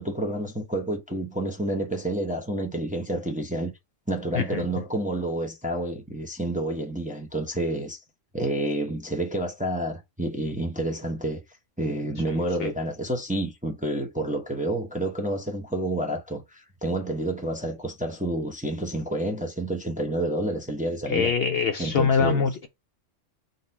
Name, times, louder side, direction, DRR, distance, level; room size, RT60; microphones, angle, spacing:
voice 1, 0.0-3.7 4.1-8.0 8.3-11.4 11.8-21.3 21.8-22.5, right 1 dB, 10° right, 0.6 m, -29 dB
voice 2, 12.3-12.7 21.1-22.7, left 6 dB, 60° left, 0.7 m, -24 dB
3.9 x 2.7 x 4.2 m
omnidirectional pair, 1.3 m